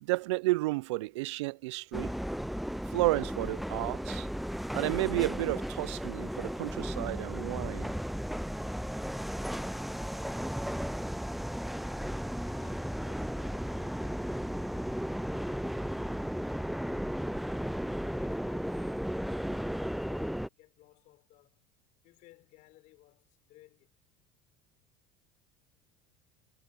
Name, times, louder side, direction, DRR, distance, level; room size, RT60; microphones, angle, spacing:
voice 1, 0.0-2.1 2.9-4.3 4.7-7.9, right 20 dB, 75° right, 0.5 m, -32 dB
sound 1, 1.9-20.5, equal, ahead, 0.3 m, -35 dB
voice 2, 12.4-15.8 18.2-21.6 22.0-24.0, left 17 dB, 60° left, 4.7 m, -61 dB
hypercardioid pair, 80°, 15 cm